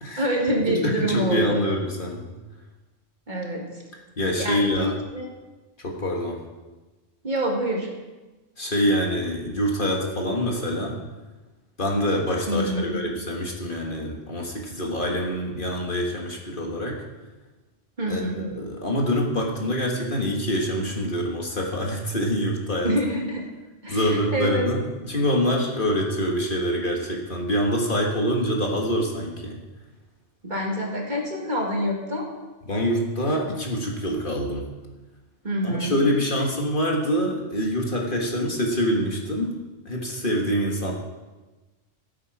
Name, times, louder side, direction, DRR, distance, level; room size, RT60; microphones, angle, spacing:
voice 1, 0.2-1.6 3.3-3.6 4.4-5.3 7.2-7.9 12.5-13.0 18.0-18.5 22.8-23.4 23.8-24.7 30.4-32.3 35.4-36.0, equal, 40° right, -1 dB, 2.1 m, -26 dB
voice 2, 0.7-2.3 4.2-5.0 5.8-6.4 8.6-11.0 11.8-17.0 18.1-22.9 23.9-29.6 32.7-34.7 35.6-39.6 39.9-40.9, equal, 45° left, -1 dB, 1.7 m, -25 dB
14.5 x 8.3 x 4.8 m, 1.2 s
omnidirectional pair, 1.3 m